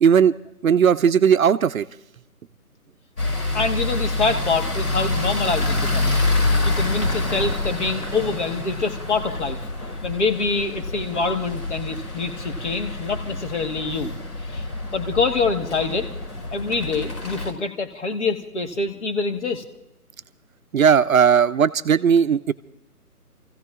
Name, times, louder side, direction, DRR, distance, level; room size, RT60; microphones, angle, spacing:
voice 1, 0.0-0.3 0.6-1.8 20.7-22.5, right 7 dB, 60° right, 14 dB, 0.6 m, -17 dB
sound 1, 3.2-17.5, left 2 dB, 85° left, 5.2 m, -27 dB
voice 2, 3.5-6.1 6.6-9.6 10.0-14.1 14.4-14.7 14.9-16.1 16.5-19.6, left 4 dB, 45° left, 7 dB, 1.5 m, -25 dB
30.0 x 15.5 x 2.4 m, 0.86 s
hypercardioid pair, 160°, 46 cm